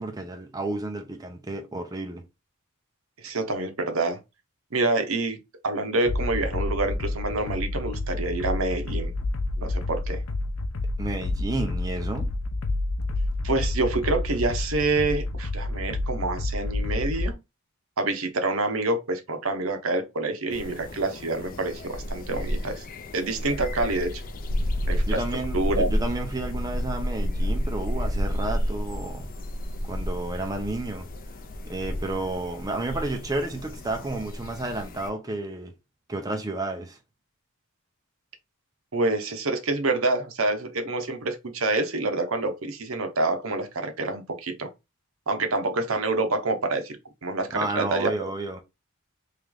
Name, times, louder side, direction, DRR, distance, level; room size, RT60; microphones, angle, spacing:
voice 1, 0.0-2.2 11.0-12.4 25.1-29.3 29.8-31.1 31.6-35.7 36.1-37.0 47.5-48.6, right 2 dB, 15° right, 0.6 m, -31 dB
voice 2, 3.2-4.2 4.7-5.4 5.6-9.1 9.6-10.2 13.4-17.4 18.0-22.8 23.1-24.2 24.9-25.2 25.5-25.9 38.9-44.7 45.3-47.0 47.2-48.1, right 2 dB, 70° right, 0.9 m, -27 dB
sound 1, 6.1-17.3, left 2 dB, 75° left, 0.7 m, -29 dB
sound 2, 20.5-35.1, equal, 40° left, 0.5 m, -31 dB
3.3 x 3.0 x 3.7 m
head